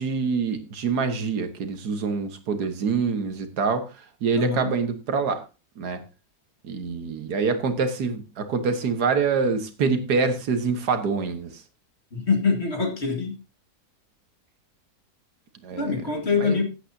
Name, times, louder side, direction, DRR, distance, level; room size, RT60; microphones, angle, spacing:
voice 1, 0.0-3.9 4.2-5.4 5.8-6.0 6.6-11.6 15.6-16.0 16.3-16.6, right 5 dB, 85° right, 1.8 m, -25 dB
voice 2, 4.3-4.7 12.1-13.4 15.8-16.6, left 5 dB, 45° left, 2.1 m, -24 dB
15.5 x 8.4 x 2.7 m
omnidirectional pair, 1.7 m